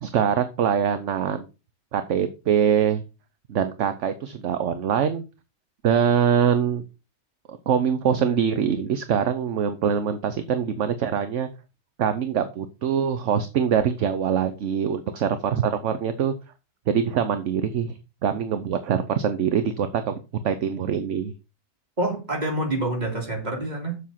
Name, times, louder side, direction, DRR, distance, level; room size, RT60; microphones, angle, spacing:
voice 1, 0.0-1.5 1.9-3.0 3.5-5.2 5.8-6.8 7.5-11.5 12.0-16.3 16.9-17.9 18.2-21.3, right 8 dB, 65° right, 11 dB, 1.1 m, -23 dB
voice 2, 22.0-24.0, right 1 dB, 30° right, 1 dB, 3.0 m, -27 dB
7.4 x 6.4 x 5.7 m, 0.30 s
omnidirectional pair, 1.4 m